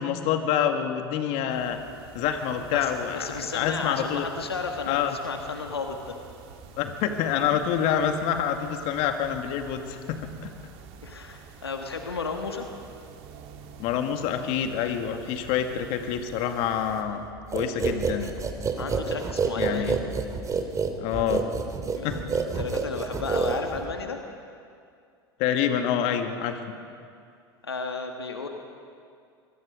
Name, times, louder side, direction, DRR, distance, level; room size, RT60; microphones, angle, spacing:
voice 1, 0.0-1.8 2.1-4.3 4.9-5.1 6.8-10.5 13.8-17.3 17.5-18.3 19.6-20.0 21.0-21.5 22.0-22.2 25.4-26.6, left 9 dB, 55° left, 6 dB, 2.1 m, -27 dB
sound 1, 1.5-17.0, right 6 dB, 50° right, 2.8 m, -48 dB
voice 2, 2.7-6.2 11.0-12.6 18.8-20.0 21.9-24.2 27.6-28.5, left 4 dB, 85° left, 4 dB, 1.8 m, -33 dB
sound 2, 17.5-24.0, right 5 dB, 25° right, 2.6 m, -28 dB
25.5 x 23.0 x 5.1 m, 2.3 s
hypercardioid pair, 80°, 13 cm